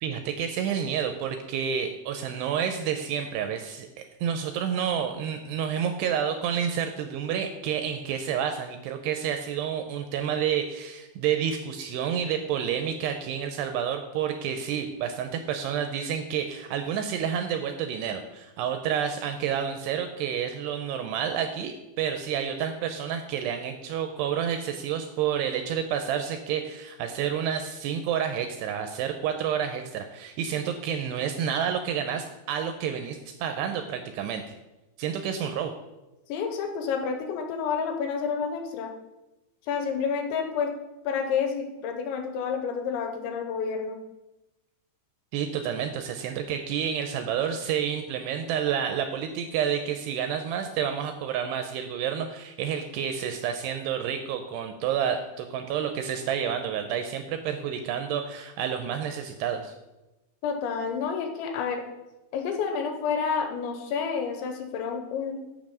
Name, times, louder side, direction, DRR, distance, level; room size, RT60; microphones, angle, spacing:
voice 1, 0.0-3.9 4.2-34.5 35.0-35.7 45.3-59.7, right 8 dB, 80° right, 6 dB, 2.5 m, -29 dB
voice 2, 36.3-38.9 39.7-40.7 41.1-44.0 60.4-61.8 62.3-65.5, left 6 dB, 85° left, 5 dB, 3.3 m, -29 dB
7.5 x 7.1 x 6.1 m, 1.0 s
omnidirectional pair, 5.3 m